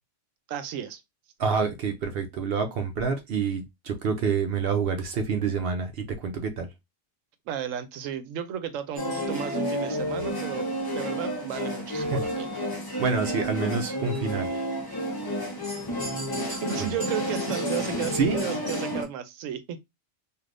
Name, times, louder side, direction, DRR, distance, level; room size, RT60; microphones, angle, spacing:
voice 1, 0.5-1.0 7.5-10.7 10.9-12.6 16.5-19.8, right 9 dB, 85° right, 0.9 m, -34 dB
voice 2, 1.4-6.7 12.0-12.2 13.0-14.5 16.8-16.9 18.1-18.4, right 5 dB, 60° right, 0.7 m, -27 dB
sound 1, 9.0-19.0, equal, 25° left, 0.7 m, -30 dB
3.3 x 2.5 x 2.5 m
omnidirectional pair, 1.3 m